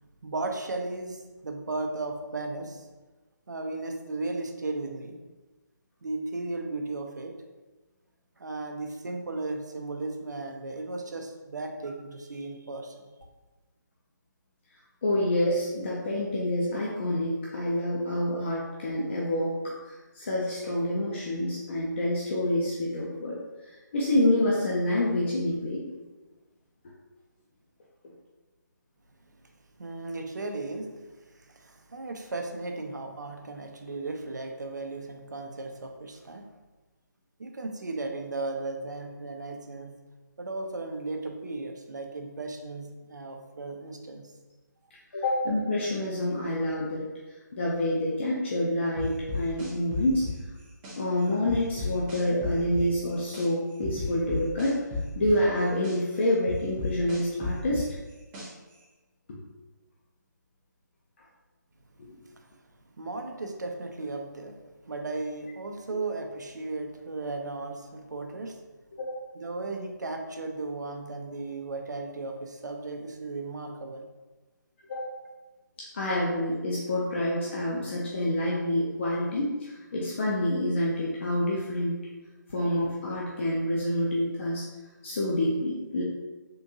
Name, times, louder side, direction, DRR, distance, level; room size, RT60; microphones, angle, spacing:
voice 1, 0.2-2.9 3.5-5.2 6.0-7.3 8.4-13.1 29.8-30.9 31.2-36.5 37.4-39.9 40.4-44.3 62.3-62.4 63.0-64.6 64.8-68.6 69.3-74.1 75.3-75.4, right 2 dB, 65° right, 4 dB, 0.5 m, -35 dB
voice 2, 15.0-25.9 45.1-50.3 51.0-54.8 55.1-57.9 62.0-62.1 65.9-66.0 69.0-69.2 74.9-75.0 75.8-82.0 82.5-84.7 85.0-86.0, left 1 dB, 35° left, -5 dB, 0.5 m, -27 dB
sound 1, 49.0-51.0 51.5-53.5 53.8-56.0 56.5-58.7, left 3 dB, 10° right, 0.5 m, -33 dB
3.6 x 2.6 x 2.7 m, 1.2 s
figure-of-eight pair, 145°, 10 cm